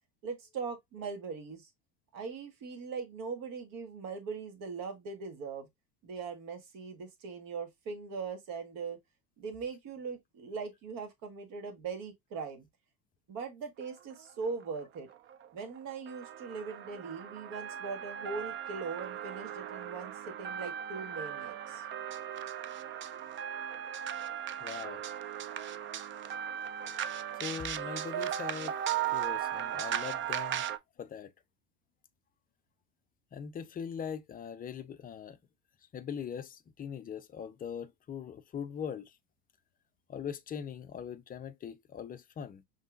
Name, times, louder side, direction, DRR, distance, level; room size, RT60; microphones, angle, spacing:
voice 1, 0.2-1.7 2.1-5.7 6.0-9.0 9.4-12.7 13.3-15.1 15.5-21.8, right 5 dB, 50° right, 1.7 m, -40 dB
sound 1, 14.2-14.3 14.6-14.8 15.1-30.8, right 10 dB, 30° right, 0.5 m, -37 dB
voice 2, 24.6-25.0 27.4-28.8 29.1-30.6 31.0-31.3 33.3-35.4 35.9-39.2 40.1-42.6, left 7 dB, 20° left, 0.5 m, -41 dB
5.4 x 3.3 x 2.5 m
hypercardioid pair, 80°, 43 cm